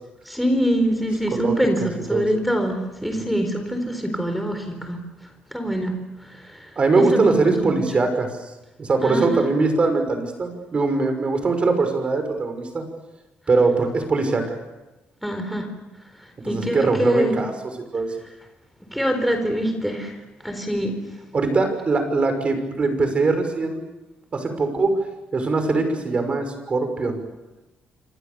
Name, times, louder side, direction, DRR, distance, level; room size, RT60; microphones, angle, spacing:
voice 1, 0.3-5.0 5.5-6.0 6.3-6.7 7.0-7.8 9.0-9.4 15.2-15.7 16.4-17.4 18.9-20.1 20.4-21.0, equal, ahead, 6 dB, 4.3 m, -24 dB
voice 2, 1.3-2.3 3.1-3.3 6.8-8.3 8.8-12.8 13.5-14.5 16.4-17.5 17.9-18.1 21.3-23.8 24.3-24.9 25.3-27.2, right 3 dB, 30° right, 7 dB, 6.0 m, -21 dB
27.5 x 27.0 x 7.0 m, 1.0 s
cardioid pair, 135°, 4 cm